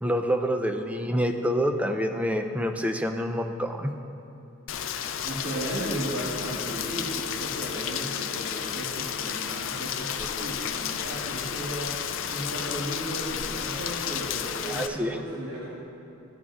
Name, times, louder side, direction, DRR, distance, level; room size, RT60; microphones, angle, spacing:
voice 1, 0.0-3.9 14.7-15.2, equal, 5° right, 4 dB, 0.4 m, -27 dB
Rain, 4.7-14.9, left 8 dB, 65° left, 0.4 m, -32 dB
voice 2, 5.2-11.9 12.3-15.7, right 1 dB, 55° right, -8 dB, 1.5 m, -35 dB
14.0 x 8.3 x 2.4 m, 2.9 s
head